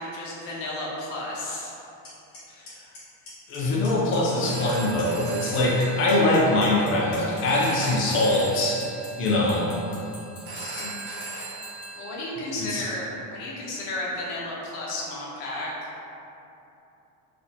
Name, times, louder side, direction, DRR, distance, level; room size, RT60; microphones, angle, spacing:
voice 1, 0.0-1.7 7.7-8.0 12.0-15.9, left 1 dB, 90° left, -5 dB, 1.0 m, -33 dB
Clock, 2.0-2.1 2.3-2.7 2.9-3.6 3.8-4.2 4.4-5.3 5.5-11.8, left 4 dB, 45° left, 1.3 m, -44 dB
voice 2, 3.5-8.9 9.2-9.7 10.5-11.2 12.6-12.8, left 2 dB, 30° left, -5 dB, 0.4 m, -23 dB
Telephone, 4.3-12.1, right 3 dB, 70° right, 1.0 m, -39 dB
4.1 x 2.4 x 2.7 m, 2.9 s
cardioid pair, 175°, 47 cm